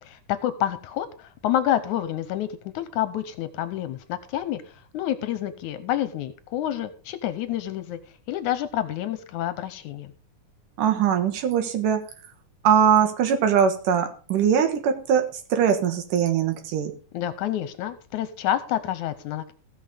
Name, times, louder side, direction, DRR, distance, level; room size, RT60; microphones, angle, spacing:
voice 1, 0.0-8.0 8.3-10.1 17.1-19.5, left 12 dB, 75° left, 13 dB, 2.1 m, -28 dB
voice 2, 10.8-12.0 12.6-16.9, right 8 dB, 85° right, 5 dB, 3.0 m, -21 dB
15.5 x 6.1 x 5.0 m, 0.39 s
omnidirectional pair, 3.7 m